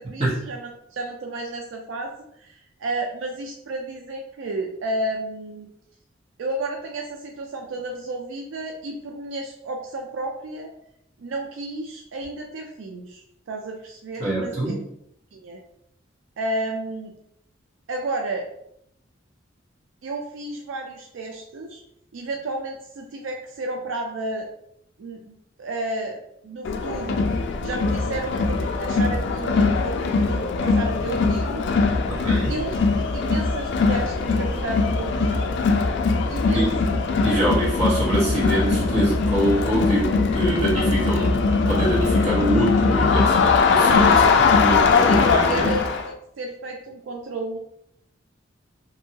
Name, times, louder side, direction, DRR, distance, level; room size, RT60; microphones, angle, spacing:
voice 1, 0.0-5.7 6.4-10.7 11.2-14.7 15.3-15.6 16.4-17.1 17.9-18.5 20.0-21.8 22.1-24.5 25.0-31.7 32.5-35.5 36.3-37.0 44.0-44.4 44.7-47.6, right 2 dB, 75° right, 2 dB, 0.4 m, -32 dB
voice 2, 14.2-14.8 32.1-32.5 36.5-36.8 37.2-45.7, right 1 dB, 35° right, -6 dB, 1.0 m, -24 dB
Crowd, 26.6-46.1, left 4 dB, 60° left, 0.3 m, -21 dB
2.7 x 2.7 x 2.7 m, 0.75 s
head